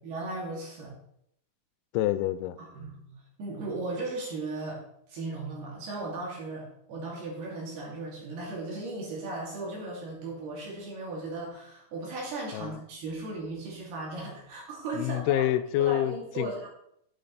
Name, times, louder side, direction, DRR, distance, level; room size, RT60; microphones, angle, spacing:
voice 1, 0.0-0.9 2.6-4.8 5.1-15.5 15.8-16.7, right 2 dB, 85° right, -3 dB, 4.6 m, -36 dB
voice 2, 1.9-2.6 12.5-12.8 15.0-16.5, left 13 dB, 90° left, 13 dB, 2.5 m, -27 dB
8.7 x 8.4 x 4.0 m, 0.72 s
omnidirectional pair, 4.4 m